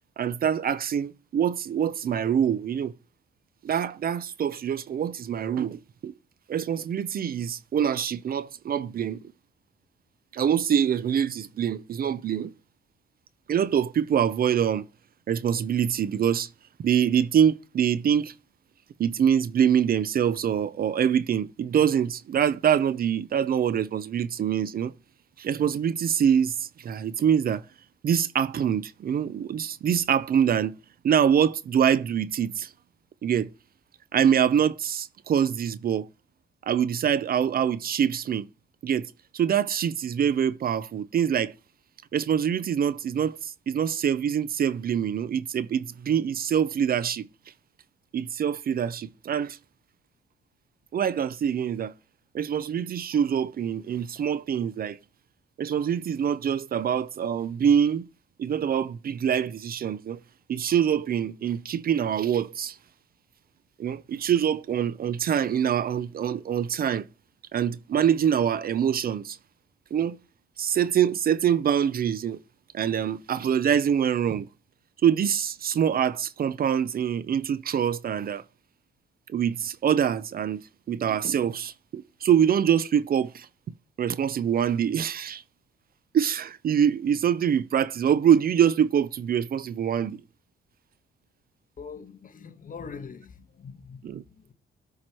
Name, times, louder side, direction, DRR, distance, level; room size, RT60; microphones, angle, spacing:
voice 1, 0.2-2.9 3.6-6.1 6.5-9.2 10.3-12.5 13.5-14.8 15.3-16.5 16.8-18.3 19.0-24.9 25.4-27.6 28.0-30.7 31.0-32.7 33.2-33.5 34.1-36.1 36.7-38.5 38.8-41.5 42.1-47.3 48.1-49.6 50.9-51.9 52.3-55.0 55.6-58.0 58.4-60.2 60.5-62.8 63.8-67.1 67.5-69.4 69.9-70.2 70.6-72.4 72.7-74.5 75.0-78.4 79.3-80.6 80.9-83.5 84.0-85.4 86.1-90.2 94.0-94.2, right 8 dB, 50° right, 0.5 m, -25 dB
voice 2, 91.8-94.0 94.4-94.5, left 5 dB, 45° left, 1.1 m, -42 dB
13.0 x 4.7 x 2.9 m
cardioid pair, 90°, 20 cm